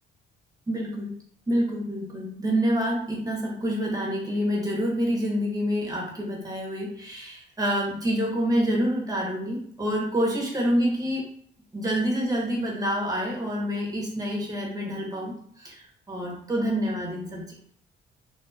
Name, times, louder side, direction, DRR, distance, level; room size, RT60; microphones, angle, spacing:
voice 1, 0.7-1.1 1.5-11.3 11.7-17.5, equal, 20° right, -3 dB, 1.0 m, -27 dB
2.5 x 2.3 x 2.7 m, 0.62 s
cardioid pair, 90°, 20 cm